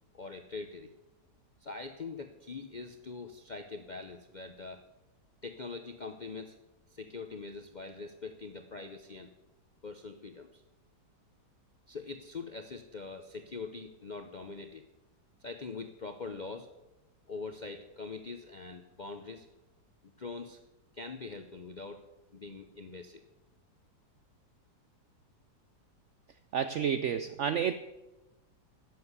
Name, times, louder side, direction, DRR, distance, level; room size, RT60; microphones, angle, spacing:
voice 1, 0.1-0.9 1.6-4.8 5.4-6.6 6.9-9.3 9.8-10.6 11.9-14.9 15.4-16.7 17.3-19.5 20.0-20.6 20.9-23.2, left 4 dB, 60° left, 7 dB, 0.4 m, -43 dB
voice 2, 26.5-27.7, right 8 dB, 85° right, 11 dB, 0.6 m, -30 dB
11.0 x 7.8 x 8.0 m, 0.99 s
omnidirectional pair, 1.8 m